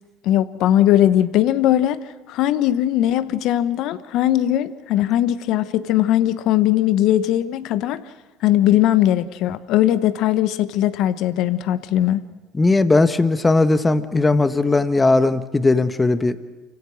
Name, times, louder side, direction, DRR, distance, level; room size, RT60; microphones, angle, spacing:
voice 1, 0.2-2.0 2.3-8.0 8.4-12.2, left 12 dB, 65° left, 1.0 m, -19 dB
voice 2, 12.6-16.4, left 3 dB, 20° left, 1.3 m, -18 dB
28.5 x 16.5 x 6.4 m
hypercardioid pair, 65°, 0 cm